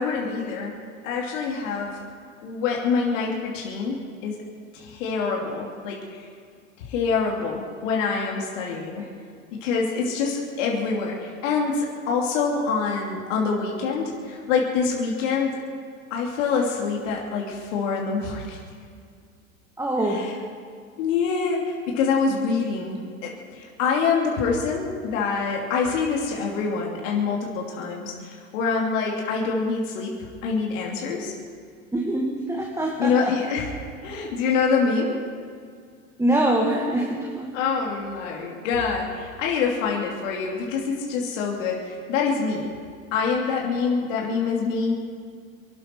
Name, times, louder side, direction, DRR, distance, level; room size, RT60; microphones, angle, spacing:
voice 1, 0.0-2.0 2.4-4.4 4.7-6.3 6.9-9.0 9.5-15.6 16.1-18.6 20.1-20.3 21.0-30.1 30.4-31.3 33.0-33.7 34.0-35.2 37.5-42.7 43.1-45.0, left 5 dB, 65° left, -2 dB, 3.0 m, -25 dB
voice 2, 19.8-20.3 31.9-33.3 36.2-37.5, right 1 dB, 5° right, 0 dB, 2.0 m, -24 dB
25.5 x 12.0 x 4.6 m, 2.2 s
hypercardioid pair, 95°, 41 cm